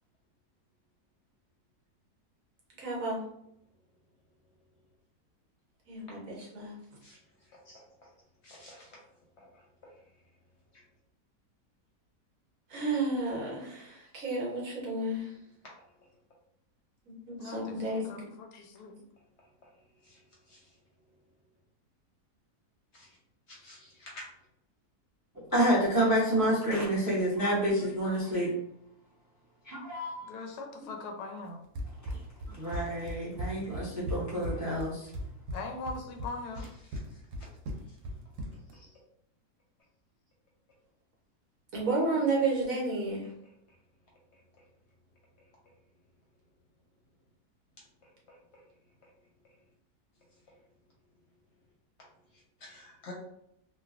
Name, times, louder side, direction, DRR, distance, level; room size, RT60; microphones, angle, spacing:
voice 1, 2.8-3.2 5.9-6.8 12.7-15.3 17.0-18.2 41.7-43.3, right 2 dB, 65° right, -3 dB, 1.2 m, -31 dB
voice 2, 7.0-8.1 8.4-9.0 9.4-9.9 20.0-20.2 20.5-20.7 22.9-23.2 23.5-24.2 36.9-37.2 37.9-38.0 38.7-39.0 48.0-48.6 52.3-53.1, left 2 dB, 55° left, -3 dB, 0.9 m, -52 dB
voice 3, 17.4-19.0 30.2-31.7 35.5-36.7, left 3 dB, 90° left, 4 dB, 1.1 m, -41 dB
voice 4, 25.5-28.5 29.6-30.3 32.0-32.1 32.5-35.1, right 1 dB, 20° right, -6 dB, 0.5 m, -28 dB
Run, 31.7-38.8, equal, 90° right, 1.1 m, -38 dB
3.1 x 2.2 x 2.4 m, 0.76 s
omnidirectional pair, 1.6 m